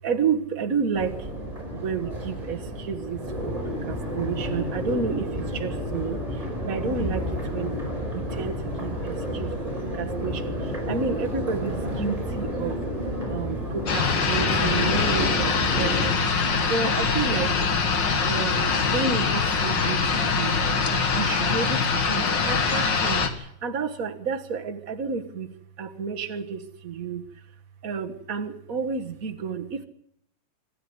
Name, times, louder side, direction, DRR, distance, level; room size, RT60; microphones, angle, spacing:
voice 1, 0.0-1.3 1.7-3.5 3.8-7.7 8.1-9.5 9.9-12.7 13.3-17.6 18.2-20.5 20.9-25.5 25.8-27.2 27.8-29.8, right 5 dB, 55° right, 5 dB, 0.9 m, -30 dB
Crowd, 0.9-16.1, equal, 10° right, 5.7 m, -31 dB
sound 1, 13.9-23.3, left 5 dB, 40° left, 1.9 m, -23 dB
26.0 x 12.5 x 9.6 m, 0.69 s
omnidirectional pair, 4.0 m